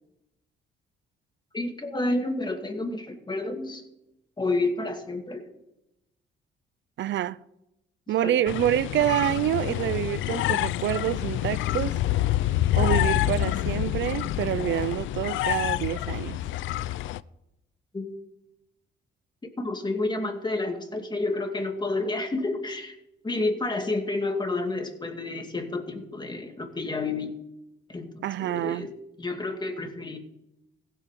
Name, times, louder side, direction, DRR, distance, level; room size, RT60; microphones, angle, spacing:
voice 1, 1.5-3.8 4.4-5.5 8.1-8.4 17.9-18.1 19.4-22.9 23.2-27.3 27.9-30.2, left 2 dB, 20° left, 2.4 m, -30 dB
voice 2, 7.0-7.4 8.1-12.0 12.8-16.4 28.2-28.9, right 12 dB, 65° right, 0.5 m, -27 dB
sound 1, 8.5-17.2, left 14 dB, 80° left, 0.5 m, -27 dB
16.0 x 7.9 x 7.5 m
cardioid pair, 90°, 20 cm